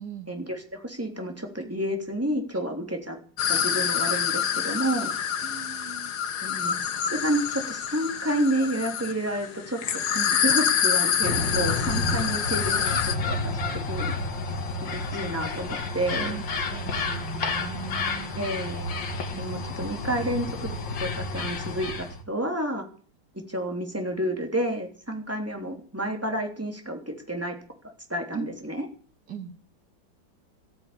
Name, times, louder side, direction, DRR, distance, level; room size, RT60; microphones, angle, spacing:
voice 1, 0.3-3.2 3.5-5.1 6.4-13.5 13.9-14.1 14.8-16.4 18.4-19.0 19.4-20.7 21.0-22.8 23.5-27.5 28.1-28.8, right 1 dB, 5° right, 3 dB, 3.3 m, -30 dB
sound 1, 3.4-13.1, left 8 dB, 65° left, 1.7 m, -27 dB
voice 2, 5.4-6.1 15.1-15.4 16.1-18.3 19.3-19.6 28.3-28.4 29.3-29.5, right 7 dB, 65° right, 5 dB, 3.1 m, -39 dB
sound 2, 11.2-22.2, left 3 dB, 85° left, 2.6 m, -30 dB
15.0 x 9.6 x 7.4 m, 0.42 s
omnidirectional pair, 1.9 m